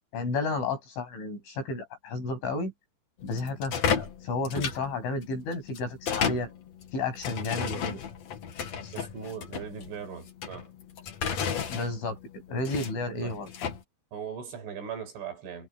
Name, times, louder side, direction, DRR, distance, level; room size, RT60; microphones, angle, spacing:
voice 1, 0.1-2.7 3.2-6.5 6.9-8.0 8.8-8.9 11.7-12.2 12.5-13.5, left 3 dB, 85° left, 10.5 m, -32 dB
sound 1, 3.2-13.8, left 7 dB, 50° left, 2.4 m, -33 dB
voice 2, 8.9-10.7 13.2-13.4 14.1-15.7, right 7 dB, 85° right, 8.1 m, -39 dB
omnidirectional pair, 5.4 m